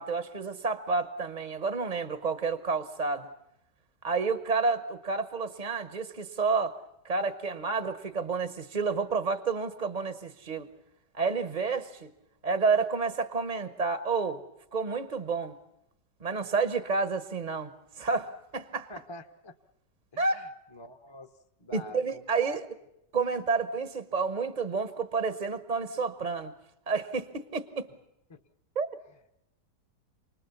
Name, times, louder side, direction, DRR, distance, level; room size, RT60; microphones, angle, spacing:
voice 1, 0.0-3.3 4.0-6.7 7.0-10.7 11.1-12.1 12.4-14.4 14.7-15.6 16.2-17.7 18.0-18.9 20.2-20.4 21.7-22.6 23.1-26.5 26.9-27.9 28.7-28.9, right 4 dB, 35° right, 11 dB, 0.8 m, -30 dB
voice 2, 18.9-19.5 20.1-21.3 21.6-22.6 28.3-28.4, left 2 dB, 20° left, 4 dB, 0.7 m, -47 dB
28.5 x 20.0 x 7.0 m, 0.86 s
omnidirectional pair, 1.9 m